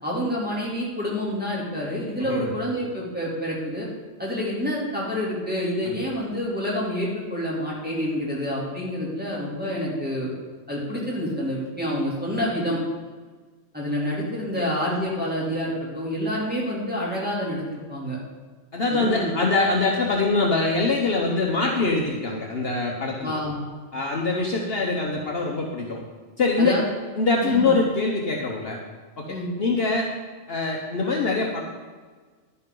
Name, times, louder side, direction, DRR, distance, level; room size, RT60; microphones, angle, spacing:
voice 1, 0.0-3.9 4.2-10.3 10.7-12.8 13.7-18.2 18.9-19.3 23.2-23.6 26.6-26.8 27.4-27.7 29.3-29.5, equal, 5° right, -6 dB, 2.9 m, -28 dB
voice 2, 18.7-23.3 23.9-26.0 26.4-26.8 27.2-28.8 29.2-30.1 30.5-31.6, left 3 dB, 55° left, 0 dB, 1.2 m, -23 dB
10.5 x 9.9 x 3.8 m, 1.4 s
omnidirectional pair, 1.3 m